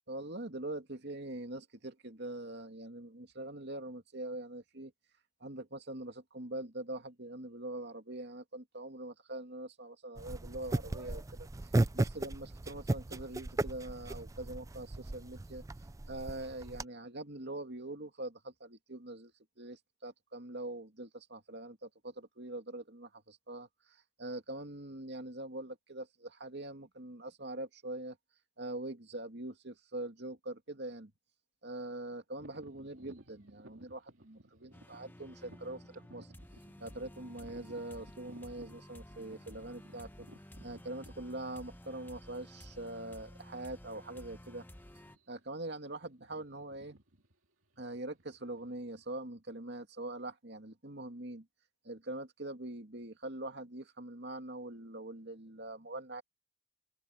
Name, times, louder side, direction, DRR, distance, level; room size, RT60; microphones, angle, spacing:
voice 1, 0.1-4.9 5.4-15.6 16.1-28.2 28.6-31.1 31.6-36.3 36.8-40.1 40.6-44.7 45.3-47.0 47.8-51.5 51.8-56.2, right 2 dB, 55° right, 2.5 m, -43 dB
sound 1, 10.2-16.8, right 2 dB, 15° right, 0.4 m, -36 dB
sound 2, 32.4-42.1 42.8-42.9 43.5-43.8 44.1-44.3 44.9-45.5 45.8-49.2, right 1 dB, 85° right, 2.7 m, -59 dB
sound 3, 34.7-45.2, equal, 10° left, 1.4 m, -53 dB
open air
head